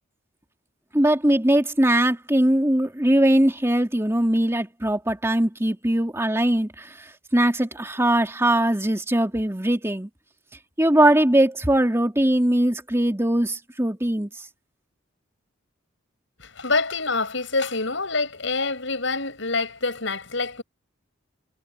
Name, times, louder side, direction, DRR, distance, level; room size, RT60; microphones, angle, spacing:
voice 1, 0.9-10.1 10.8-14.3, right 1 dB, 15° right, 2.6 m, -21 dB
voice 2, 16.4-20.6, left 3 dB, 65° left, 7.7 m, -26 dB
head